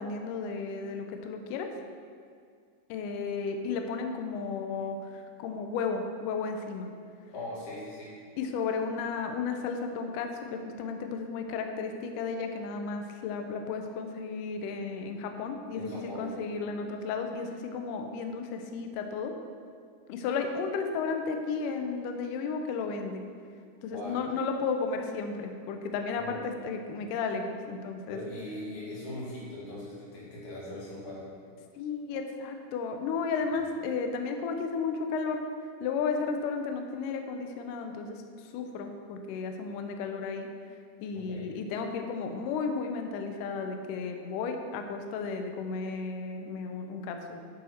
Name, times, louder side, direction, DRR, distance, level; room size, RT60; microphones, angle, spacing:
voice 1, 0.0-1.7 2.9-6.9 8.4-19.3 20.1-23.2 23.8-28.2 31.8-35.4 35.8-38.2 38.5-40.5 41.0-47.4, left 5 dB, 90° left, 5 dB, 1.8 m, -33 dB
voice 2, 7.3-8.1 15.7-16.3 23.9-24.2 26.1-26.4 28.1-31.3 33.5-33.7 41.3-41.5, left 1 dB, 55° left, -6 dB, 3.3 m, -40 dB
11.0 x 6.4 x 4.3 m, 2.2 s
omnidirectional pair, 4.7 m